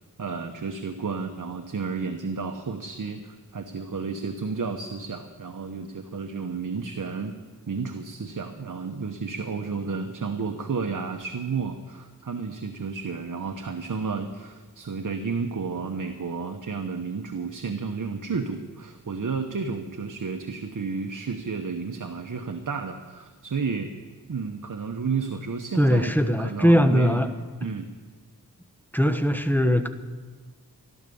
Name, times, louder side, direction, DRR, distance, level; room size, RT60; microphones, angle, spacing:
voice 1, 0.2-7.3 7.7-23.9 24.3-27.3 27.6-27.9, right 5 dB, 55° right, 6 dB, 1.2 m, -32 dB
voice 2, 25.8-27.3 28.9-29.9, equal, 5° left, 7 dB, 1.2 m, -20 dB
16.0 x 12.0 x 7.1 m, 1.4 s
cardioid pair, 50°, 36 cm